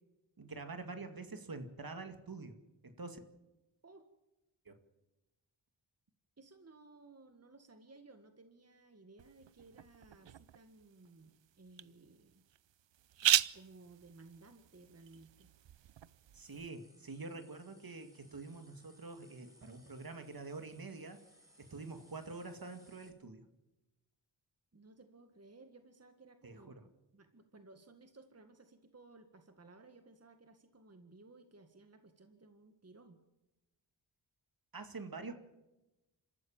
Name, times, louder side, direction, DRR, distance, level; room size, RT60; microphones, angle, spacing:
voice 1, 0.4-2.6 2.8-3.2 4.7-4.8 16.3-21.2 21.6-23.4 26.4-26.8 34.7-35.3, right 3 dB, 50° right, 7 dB, 2.3 m, -46 dB
voice 2, 6.4-12.4 13.5-15.5 24.7-33.2, right 3 dB, 35° right, 7 dB, 1.9 m, -59 dB
sound 1, 9.2-16.7, right 11 dB, 70° right, 0.7 m, -38 dB
sound 2, 16.4-23.1, equal, 5° right, 6.5 m, -65 dB
25.5 x 14.0 x 7.3 m, 1.0 s
cardioid pair, 55°, 46 cm